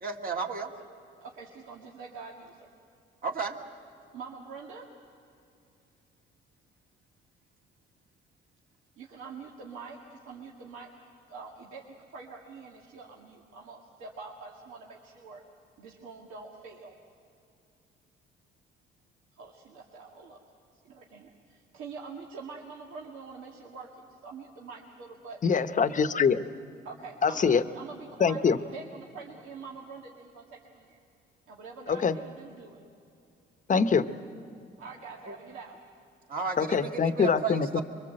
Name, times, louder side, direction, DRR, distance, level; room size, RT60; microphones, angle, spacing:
voice 1, 0.0-0.7 3.2-3.6 35.3-35.4 36.3-37.8, right 5 dB, 45° right, 2 dB, 2.2 m, -33 dB
voice 2, 1.2-2.7 4.1-4.9 9.0-10.9 11.3-15.4 15.8-17.0 19.3-20.4 20.8-25.4 26.8-31.0 31.5-32.8 34.8-35.8, right 4 dB, 85° right, -2 dB, 2.0 m, -45 dB
voice 3, 25.4-26.4 27.2-27.6 28.2-28.6 31.9-32.1 33.7-34.1 36.6-37.8, left 6 dB, 40° left, 11 dB, 0.9 m, -24 dB
25.0 x 23.0 x 7.7 m, 2.6 s
cardioid pair, 90°, 20 cm